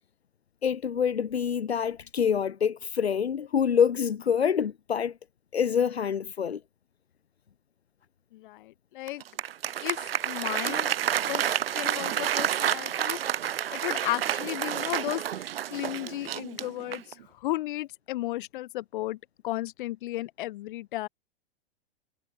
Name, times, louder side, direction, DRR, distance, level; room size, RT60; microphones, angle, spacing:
voice 1, 0.6-5.2 5.5-6.6, left 7 dB, 80° left, 1.0 m, -26 dB
voice 2, 8.3-9.2 9.8-10.9 11.2-13.2 13.7-19.2 19.4-21.1, left 16 dB, 55° left, 1.5 m, -34 dB
Applause, 9.1-17.2, right 10 dB, 65° right, 1.2 m, -29 dB
figure-of-eight pair, 95°, 31 cm